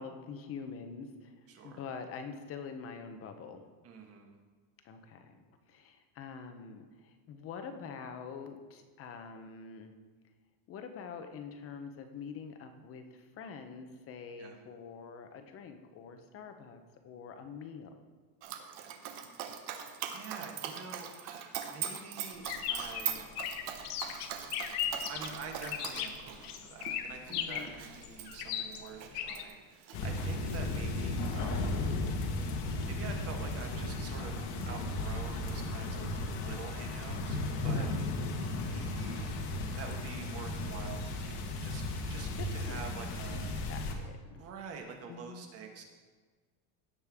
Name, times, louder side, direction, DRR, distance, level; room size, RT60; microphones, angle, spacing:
voice 1, 0.0-1.4 1.6-3.6 4.8-5.4 5.7-9.9 10.7-18.1 27.3-27.7 30.2-30.3 37.6-38.1 42.3-44.4 45.1-45.5, left 5 dB, 30° left, 7 dB, 0.8 m, -45 dB
voice 2, 1.5-1.8 3.8-4.4 14.4-14.6 20.1-23.3 25.1-31.9 32.9-37.9 38.5-43.5 44.3-45.9, right 5 dB, 30° right, 3 dB, 1.4 m, -47 dB
Dog, 18.4-29.5 29.8-30.9, right 8 dB, 60° right, 1.2 m, -41 dB
sound 1, 22.4-29.4, left 9 dB, 80° left, 1.1 m, -37 dB
sound 2, 29.9-43.9, left 2 dB, 60° left, 1.6 m, -35 dB
16.5 x 6.6 x 3.6 m, 1.4 s
cardioid pair, 165°, 45 cm